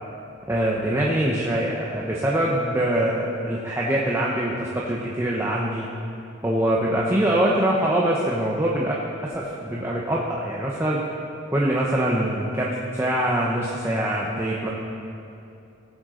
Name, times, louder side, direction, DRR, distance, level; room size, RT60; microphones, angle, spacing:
voice 1, 0.5-5.9 6.4-9.0 9.3-11.0 11.5-14.7, right 1 dB, 15° right, -4 dB, 0.8 m, -23 dB
17.0 x 7.8 x 3.8 m, 2.6 s
head